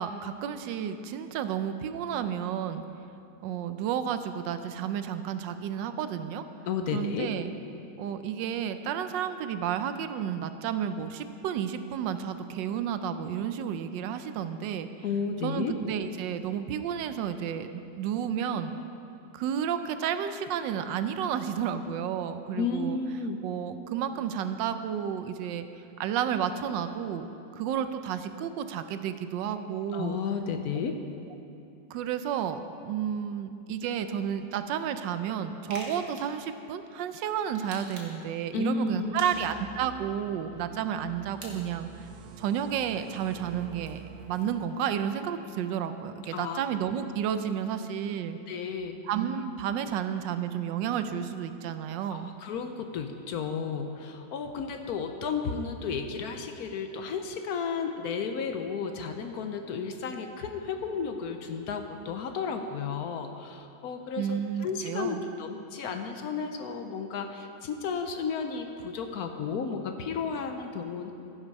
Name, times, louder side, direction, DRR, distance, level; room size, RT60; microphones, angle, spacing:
voice 1, 0.0-2.8 3.4-6.4 6.9-7.5 8.0-14.9 15.4-18.8 19.3-23.0 23.4-25.7 26.0-27.3 27.5-30.2 31.9-42.1 42.4-44.0 44.3-48.4 49.0-52.3 64.2-65.2, right 8 dB, 85° right, 10 dB, 1.3 m, -31 dB
voice 2, 6.7-7.3 15.0-15.7 22.6-23.4 29.9-31.0 38.5-39.3 46.3-46.6 48.5-49.0 52.1-71.1, left 5 dB, 70° left, 6 dB, 1.0 m, -33 dB
sound 1, 35.7-36.4 37.5-38.3 39.2-39.8 41.4-41.5 43.5-44.5, right 2 dB, 50° right, 1.7 m, -46 dB
sound 2, 38.9-44.5, right 6 dB, 70° right, 1.3 m, -48 dB
15.0 x 6.1 x 5.3 m, 2.7 s
omnidirectional pair, 1.9 m